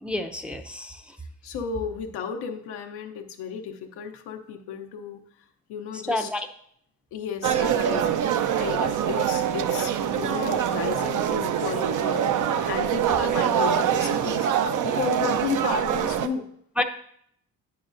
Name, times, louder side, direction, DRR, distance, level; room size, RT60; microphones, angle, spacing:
voice 1, 0.0-1.2 5.9-6.5 15.2-15.3 16.8-16.9, left 1 dB, 5° right, 5 dB, 0.6 m, -29 dB
voice 2, 1.4-5.2 5.7-6.3 7.1-14.5 14.8-16.5, left 7 dB, 80° left, 4 dB, 0.9 m, -33 dB
sound 1, 7.4-16.3, right 9 dB, 50° right, 0.6 m, -24 dB
8.7 x 5.9 x 2.6 m, 0.68 s
supercardioid pair, 60°, 39 cm